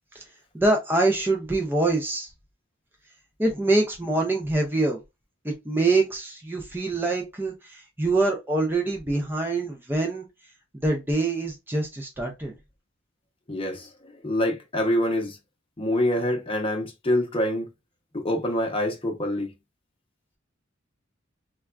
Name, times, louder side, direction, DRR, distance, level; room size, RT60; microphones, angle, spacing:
voice 1, 0.5-2.3 3.4-5.0 5.4-10.3 10.7-12.5, right 2 dB, 10° right, 0.4 m, -25 dB
voice 2, 13.5-15.4 15.8-17.7 18.1-19.5, left 1 dB, 30° left, 0.8 m, -26 dB
3.4 x 2.2 x 2.2 m
head